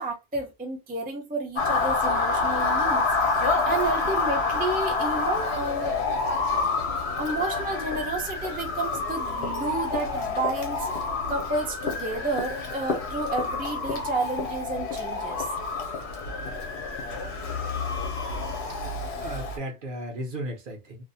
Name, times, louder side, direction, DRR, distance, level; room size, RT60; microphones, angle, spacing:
voice 1, 0.0-3.1 3.4-6.0 7.2-10.9 11.3-15.5, right 2 dB, 15° right, 0.4 m, -31 dB
Motor vehicle (road) / Siren, 1.6-19.6, left 3 dB, 80° left, 1.0 m, -28 dB
voice 2, 19.2-21.0, right 1 dB, 55° right, 0.9 m, -35 dB
2.5 x 2.0 x 2.7 m
omnidirectional pair, 1.1 m